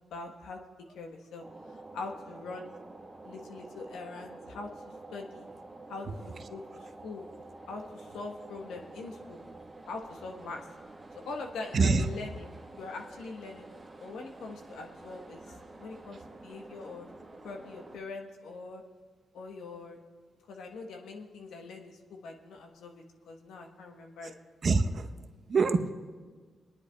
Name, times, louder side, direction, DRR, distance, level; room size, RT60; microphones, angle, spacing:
voice 1, 0.1-0.6 0.9-1.4 1.7-2.7 3.2-4.7 5.1-5.5 5.9-7.3 7.7-9.4 9.8-10.7 11.2-17.1 17.4-18.8 19.3-20.0 20.5-24.3, left 3 dB, 85° left, 2 dB, 1.2 m, -43 dB
sound 1, 1.4-18.0, right 2 dB, 30° right, 1.3 m, -49 dB
voice 2, 11.7-12.1 15.1-15.2 24.6-25.1 25.5-25.9, right 4 dB, 55° right, 8 dB, 0.8 m, -25 dB
28.0 x 10.0 x 2.3 m, 1.5 s
supercardioid pair, 50°, 0 cm